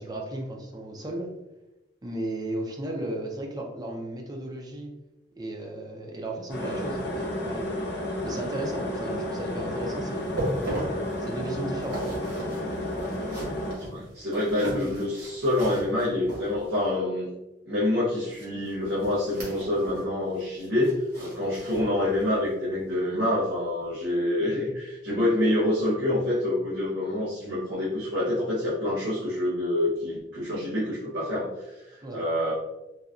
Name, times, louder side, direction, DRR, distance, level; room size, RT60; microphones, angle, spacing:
voice 1, 0.0-1.3 2.0-4.9 5.4-7.8 8.2-10.4 11.2-12.2 32.0-32.2, right 1 dB, 25° right, 1 dB, 0.5 m, -35 dB
sound 1, 6.5-13.7, left 1 dB, 65° left, 0.8 m, -32 dB
sound 2, 10.2-16.9 18.3-20.1 20.4-22.4 22.8-22.9 23.5-23.6, right 1 dB, 65° right, 1.4 m, -37 dB
voice 2, 13.9-17.3 17.7-32.5, left 1 dB, 80° right, -9 dB, 0.9 m, -27 dB
4.0 x 2.2 x 2.4 m, 0.98 s
head